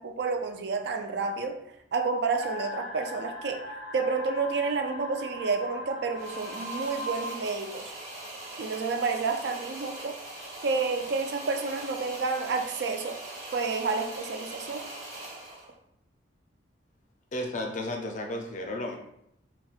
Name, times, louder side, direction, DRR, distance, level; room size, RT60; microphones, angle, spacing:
voice 1, 0.0-1.6 1.9-3.6 3.9-7.9 8.6-10.2 10.6-13.2 13.5-14.9, right 4 dB, 60° right, 5 dB, 0.3 m, -30 dB
sound 1, 2.3-7.3, left 1 dB, 85° right, 1.4 m, -39 dB
sound 2, 6.1-15.7, right 2 dB, 45° right, 0.9 m, -41 dB
voice 2, 17.3-19.0, left 1 dB, 40° left, 2 dB, 0.4 m, -33 dB
4.0 x 2.1 x 2.4 m, 0.78 s
head